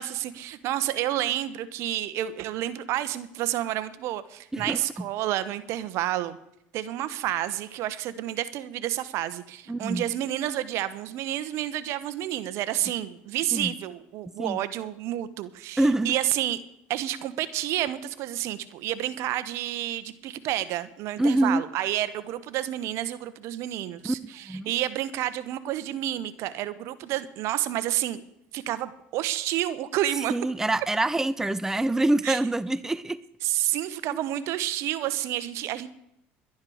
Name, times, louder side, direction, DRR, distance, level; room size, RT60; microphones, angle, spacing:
voice 1, 0.0-6.4 6.7-16.6 16.9-28.2 28.5-30.3 32.2-32.4 33.4-35.9, right 13 dB, 65° right, 14 dB, 1.2 m, -30 dB
voice 2, 9.7-10.0 13.5-13.7 14.4-14.6 15.8-16.1 21.2-21.6 24.0-24.2 24.5-24.7 30.3-33.2, right 2 dB, 10° right, 16 dB, 0.5 m, -25 dB
11.5 x 11.0 x 6.4 m, 0.79 s
supercardioid pair, 90°, 5 cm